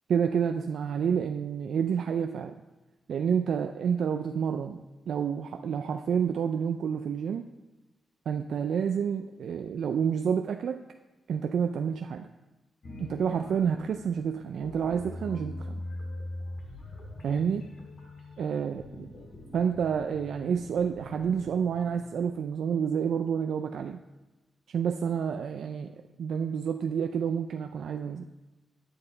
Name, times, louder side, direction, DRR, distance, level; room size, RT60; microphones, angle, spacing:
voice 1, 0.1-2.5 3.1-7.4 8.3-10.8 11.3-12.3 13.0-15.8 17.2-17.7 18.4-19.1 19.5-24.0 24.7-28.2, right 7 dB, 80° right, 6 dB, 0.4 m, -29 dB
sound 1, 12.8-23.0, left 1 dB, 60° left, 1.8 m, -43 dB
9.7 x 7.8 x 3.9 m, 1.1 s
wide cardioid pair, 120°, 0 cm